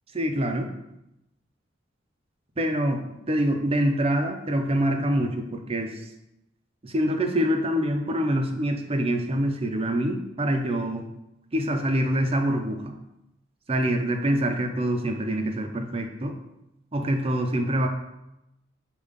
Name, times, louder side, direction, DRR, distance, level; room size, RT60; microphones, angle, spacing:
voice 1, 0.1-0.7 2.6-6.0 6.8-11.1 11.5-13.0 13.7-16.3 16.9-17.9, right 1 dB, 30° right, 4 dB, 0.7 m, -25 dB
6.6 x 3.0 x 5.2 m, 0.88 s
head